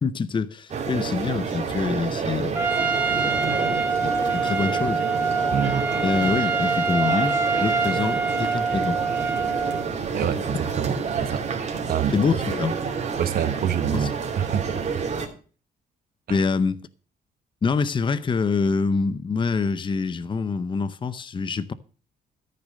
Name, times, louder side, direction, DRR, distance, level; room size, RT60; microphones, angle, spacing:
voice 1, 0.0-2.6 3.2-5.1 6.0-9.0 12.1-12.8 13.9-14.1 16.3-16.8 17.6-21.7, left 5 dB, 30° left, 0.7 m, -26 dB
sound 1, 0.7-15.2, right 5 dB, 40° right, 2.9 m, -29 dB
Trumpet, 2.5-9.9, right 4 dB, 10° right, 2.7 m, -25 dB
voice 2, 5.5-5.9 10.1-11.4 11.9-12.1 13.2-15.0 16.3-16.4, right 8 dB, 55° right, 1.1 m, -26 dB
14.0 x 6.7 x 6.5 m
cardioid pair, 130°, 18 cm